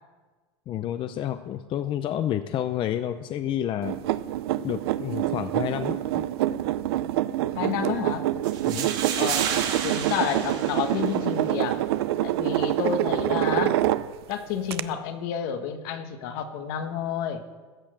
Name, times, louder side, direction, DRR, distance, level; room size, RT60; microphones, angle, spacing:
voice 1, 0.7-4.0 4.6-6.2 8.7-8.9, left 11 dB, 40° left, 10 dB, 0.6 m, -29 dB
sound 1, 3.8-14.3 14.7-14.8, right 14 dB, 85° right, 0.5 m, -26 dB
voice 2, 7.5-8.2 9.2-9.5 9.7-11.8 12.2-13.8 14.3-17.4, left 8 dB, 65° left, 8 dB, 1.3 m, -30 dB
sound 2, 8.4-11.5, right 8 dB, 65° right, 2.7 m, -31 dB
13.5 x 6.5 x 7.8 m, 1.4 s
supercardioid pair, 110°, 13 cm